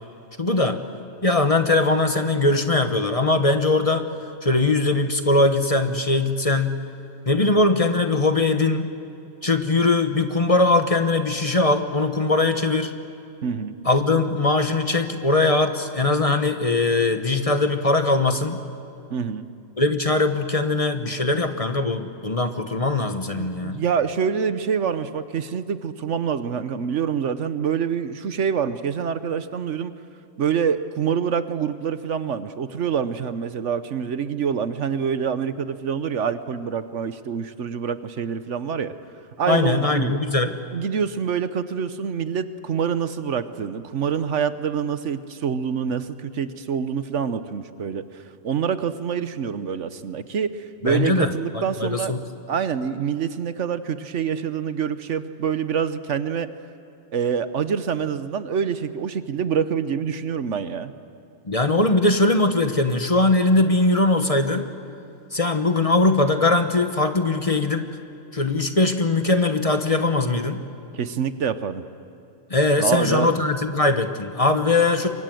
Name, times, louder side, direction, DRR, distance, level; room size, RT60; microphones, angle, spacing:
voice 1, 0.4-0.8 1.2-4.1 4.4-6.8 7.3-8.9 9.4-12.9 13.8-18.6 19.8-23.8 39.5-40.5 50.8-52.2 61.5-64.7 65.3-67.9 68.3-70.6 72.5-75.1, left 2 dB, 30° left, 7 dB, 1.1 m, -21 dB
voice 2, 13.4-13.8 19.1-19.5 23.3-29.9 30.4-38.9 39.4-40.2 40.7-48.0 48.4-50.5 50.8-52.1 52.5-56.5 57.1-60.9 70.9-71.8 72.8-73.4, right 7 dB, 70° right, 12 dB, 1.2 m, -26 dB
28.0 x 23.5 x 7.8 m, 2.6 s
omnidirectional pair, 1.3 m